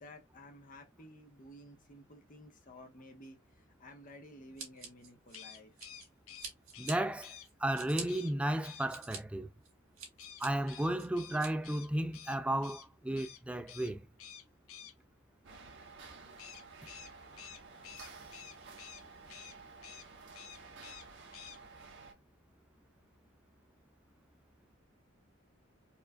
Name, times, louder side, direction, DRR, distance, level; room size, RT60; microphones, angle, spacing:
voice 1, 0.0-5.7, left 1 dB, 40° left, 1.0 m, -54 dB
Scissors, 4.6-6.1 6.4-6.9 7.4-8.0 8.6-9.2 9.6-10.5 11.0-11.5, right 5 dB, 90° right, 1.9 m, -45 dB
sound 1, 5.3-7.5 8.1-8.3 8.6-8.9 10.2-12.9 13.2-13.4 13.7-13.9 14.2-14.9 16.4-19.0 19.3-19.6 19.8-20.1 20.3-21.1 21.3-21.6, left 9 dB, 85° left, 0.6 m, -51 dB
voice 2, 6.8-9.5 10.4-14.1, right 1 dB, 5° right, 0.3 m, -34 dB
sound 2, 15.4-22.1, right 4 dB, 60° right, 1.1 m, -52 dB
4.4 x 2.5 x 2.2 m
head